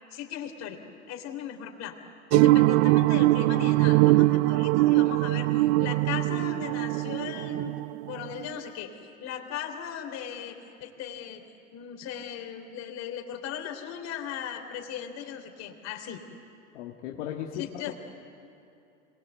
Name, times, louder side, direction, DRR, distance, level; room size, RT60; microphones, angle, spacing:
voice 1, 0.1-0.8 1.1-2.0 2.3-11.4 11.7-16.2 17.5-17.9, left 9 dB, 50° left, 4 dB, 3.4 m, -38 dB
sound 1, 2.3-8.5, right 19 dB, 55° right, 0.5 m, -22 dB
voice 2, 16.7-17.9, left 10 dB, 75° left, 0 dB, 1.7 m, -36 dB
27.0 x 21.0 x 8.1 m, 2.7 s
hypercardioid pair, 100°, 35 cm